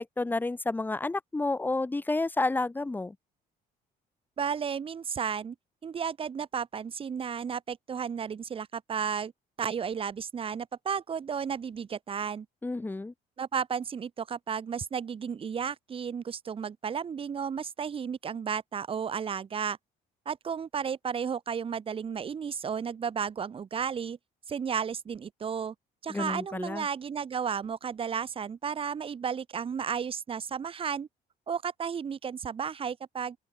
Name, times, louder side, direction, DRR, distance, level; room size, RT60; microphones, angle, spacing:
voice 1, 0.0-3.1 12.6-13.1 26.1-26.9, left 2 dB, 10° left, 0.8 m, -30 dB
voice 2, 4.4-5.5 5.8-9.3 9.6-12.5 13.4-19.8 20.3-24.2 24.5-25.7 26.0-31.1 31.5-33.4, right 7 dB, 35° right, 1.1 m, -33 dB
open air
cardioid pair, 110°, 17 cm